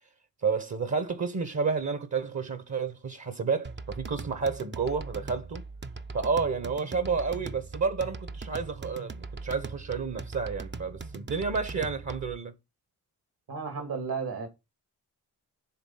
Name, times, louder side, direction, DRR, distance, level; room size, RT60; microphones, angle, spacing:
voice 1, 0.4-5.6 6.1-12.5, right 5 dB, 45° right, 1.2 m, -30 dB
sound 1, 3.6-12.4, right 3 dB, 25° right, 0.7 m, -40 dB
voice 2, 13.5-14.5, right 5 dB, 60° right, 2.3 m, -33 dB
10.0 x 3.8 x 5.8 m
cardioid pair, 70°, 40 cm